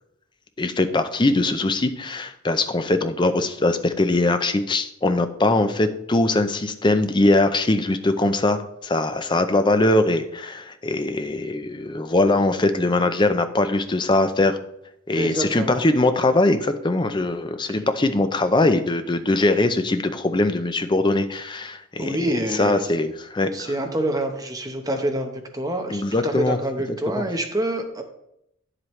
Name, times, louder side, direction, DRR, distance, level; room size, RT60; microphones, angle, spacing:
voice 1, 0.6-14.6 15.1-22.2 22.6-23.7 25.9-26.6, left 2 dB, 20° left, 9 dB, 0.5 m, -21 dB
voice 2, 15.1-15.9 17.7-17.8 22.0-22.8 23.5-28.0, right 1 dB, 15° right, 4 dB, 0.9 m, -27 dB
9.8 x 7.6 x 3.2 m, 0.79 s
head